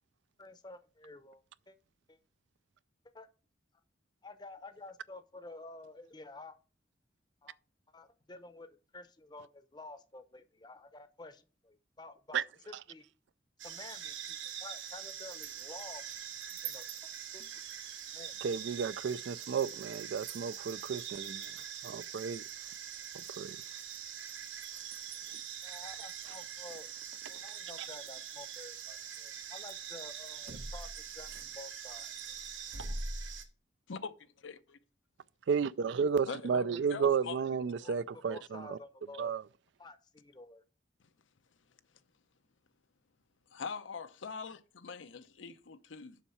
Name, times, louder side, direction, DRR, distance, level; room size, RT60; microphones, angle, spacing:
voice 1, 0.4-1.8 2.1-2.2 3.1-3.3 4.2-6.6 7.4-7.6 7.9-13.0 13.6-16.0 16.5-17.5 18.1-18.4 25.6-26.9 27.3-32.1 36.6-36.8 37.1-37.2 37.8-39.3 39.8-40.6, left 2 dB, 20° left, 0.7 m, -51 dB
sound 1, 13.6-33.4, right 7 dB, 85° right, 1.2 m, -43 dB
voice 2, 18.4-21.5 21.8-22.4 23.4-23.6 35.5-38.8 39.2-39.4, right 6 dB, 65° right, 0.3 m, -32 dB
voice 3, 33.9-34.8 36.3-37.4 37.8-38.0 43.5-46.2, left 5 dB, 80° left, 0.7 m, -43 dB
7.2 x 5.6 x 5.5 m
head